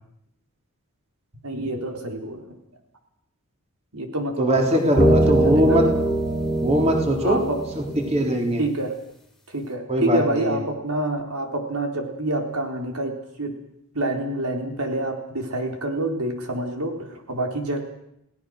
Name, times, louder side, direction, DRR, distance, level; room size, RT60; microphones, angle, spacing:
voice 1, 1.4-2.6 3.9-5.2 5.4-5.8 7.2-7.6 8.6-8.9 9.5-13.5 13.9-17.8, right 1 dB, 85° right, 3 dB, 4.0 m, -27 dB
voice 2, 4.4-5.8 6.6-7.4 8.1-8.6 9.9-10.6, right 1 dB, 30° right, 2 dB, 3.5 m, -21 dB
sound 1, 4.6-4.7 5.0-8.3, right 1 dB, ahead, 3.5 m, -22 dB
29.0 x 18.0 x 6.5 m, 0.79 s
head